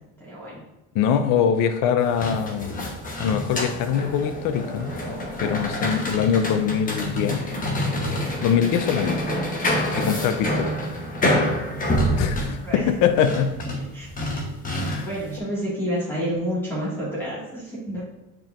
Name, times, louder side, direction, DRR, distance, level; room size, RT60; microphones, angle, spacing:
voice 1, 0.2-0.6 12.6-12.9 13.9-14.1 15.0-18.0, equal, 5° left, -8 dB, 2.0 m, -29 dB
voice 2, 0.9-2.9 3.2-4.9 5.4-7.4 8.4-9.2 10.0-10.7 12.1-13.5 14.9-15.1, left 8 dB, 80° left, 8 dB, 0.7 m, -23 dB
sound 1, 2.0-15.3, left 1 dB, 25° left, 1.2 m, -27 dB
9.0 x 4.5 x 2.6 m, 1.0 s
cardioid pair, 145°, 32 cm